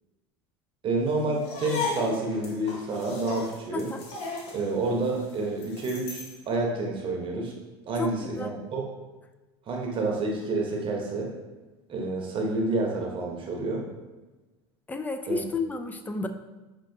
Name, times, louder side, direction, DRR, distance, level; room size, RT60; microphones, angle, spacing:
voice 1, 0.8-3.9 4.5-7.6 7.9-8.9 9.7-11.3 11.9-13.8 15.3-15.4, right 2 dB, 40° right, 0 dB, 0.9 m, -29 dB
sound 1, 1.4-6.4, left 3 dB, 55° left, 0.9 m, -36 dB
voice 2, 8.0-8.5 14.9-16.3, left 3 dB, 10° left, 7 dB, 0.3 m, -31 dB
5.5 x 2.9 x 2.7 m, 1.2 s
hypercardioid pair, 95°, 13 cm